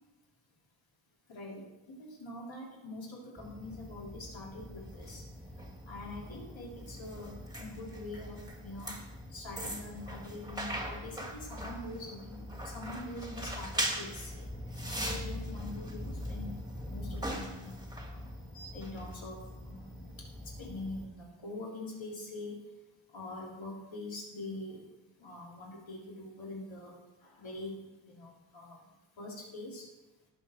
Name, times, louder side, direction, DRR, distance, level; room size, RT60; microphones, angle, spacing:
voice 1, 1.3-1.6 2.0-5.2 5.9-7.3 7.6-9.0 9.3-14.4 14.9-16.5 16.9-18.2 18.7-19.4 19.6-20.1 20.6-22.6 23.1-24.8 25.2-26.9 27.2-28.8 29.2-29.8, left 2 dB, 75° left, -3 dB, 3.6 m, -44 dB
sound 1, 3.4-21.1, equal, 10° right, 1.6 m, -41 dB
18.0 x 7.3 x 4.5 m, 1.0 s
wide cardioid pair, 145°, 47 cm